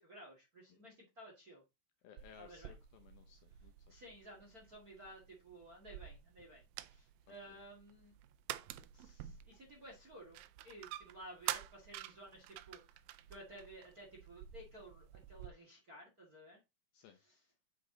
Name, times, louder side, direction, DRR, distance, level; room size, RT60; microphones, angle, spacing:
voice 1, 0.0-1.6 2.4-2.7 3.9-6.6 6.9-8.1 8.9-13.0 13.3-16.6 17.2-17.3, right 1 dB, 30° right, -1 dB, 1.8 m, -55 dB
voice 2, 2.0-4.0 7.5-7.6 16.9-17.2, left 8 dB, 75° left, 6 dB, 2.3 m, -60 dB
sound 1, 2.2-15.5, right 14 dB, 90° right, 2.1 m, -49 dB
6.7 x 6.7 x 3.9 m, 0.24 s
omnidirectional pair, 4.9 m